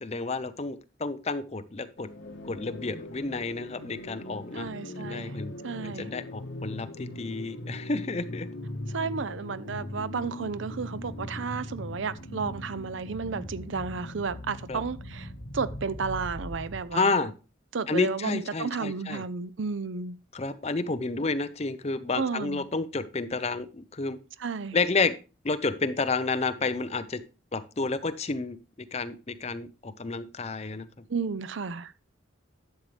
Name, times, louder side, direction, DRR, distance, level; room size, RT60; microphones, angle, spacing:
voice 1, 0.0-2.1 2.4-4.7 5.0-5.5 5.8-8.5 14.7-14.8 16.9-17.3 17.9-19.2 20.3-24.2 24.7-25.1 25.4-27.2 27.5-28.6 28.9-30.9, left 3 dB, 35° left, 0.6 m, -30 dB
sound 1, 2.0-16.9, left 1 dB, 75° left, 1.4 m, -40 dB
voice 2, 4.5-5.4 5.6-6.1 8.9-17.3 17.7-20.2 22.2-22.6 24.4-24.8 31.1-31.9, right 5 dB, 75° right, 0.6 m, -32 dB
11.5 x 7.4 x 3.3 m
head